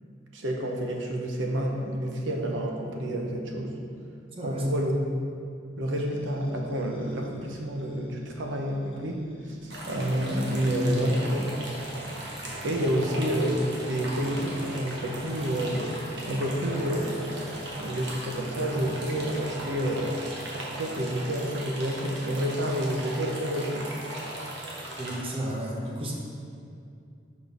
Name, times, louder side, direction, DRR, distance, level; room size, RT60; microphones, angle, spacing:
voice 1, 0.3-3.7 4.4-5.0 5.8-11.5 12.6-16.0 16.3-17.3 17.8-23.9, equal, 80° right, 2 dB, 0.9 m, -29 dB
voice 2, 4.4-4.7 12.5-12.9 25.0-26.1, right 1 dB, 30° right, -2 dB, 1.0 m, -34 dB
sound 1, 6.0-19.7, equal, 30° left, 0.9 m, -49 dB
sound 2, 9.7-25.2, right 1 dB, 60° right, 1.3 m, -38 dB
6.1 x 5.3 x 5.2 m, 2.5 s
head